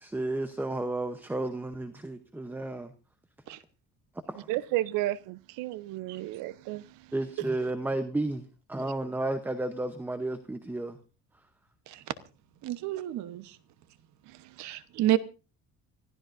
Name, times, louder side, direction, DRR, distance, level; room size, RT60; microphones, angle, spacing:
voice 1, 0.0-2.9 4.3-4.5 7.1-11.0, right 2 dB, 5° right, 0.8 m, -32 dB
voice 2, 4.5-6.8, right 16 dB, 85° right, 0.7 m, -32 dB
voice 3, 12.6-13.5 14.6-15.2, right 14 dB, 60° right, 1.1 m, -29 dB
25.5 x 15.5 x 2.6 m
cardioid pair, 140°, 32 cm